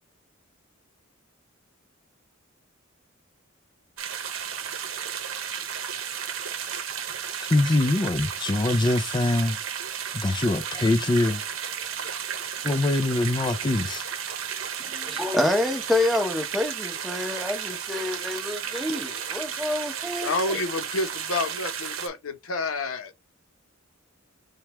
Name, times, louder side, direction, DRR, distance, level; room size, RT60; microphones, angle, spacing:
sound 1, 4.0-22.1, right 8 dB, 70° right, 0.8 m, -33 dB
voice 1, 7.5-9.6 10.1-11.4 12.6-14.0, left 2 dB, 20° left, 0.4 m, -23 dB
voice 2, 14.8-20.6, left 1 dB, ahead, 0.8 m, -27 dB
voice 3, 20.2-23.1, left 3 dB, 90° left, 0.8 m, -29 dB
4.5 x 2.3 x 3.0 m
head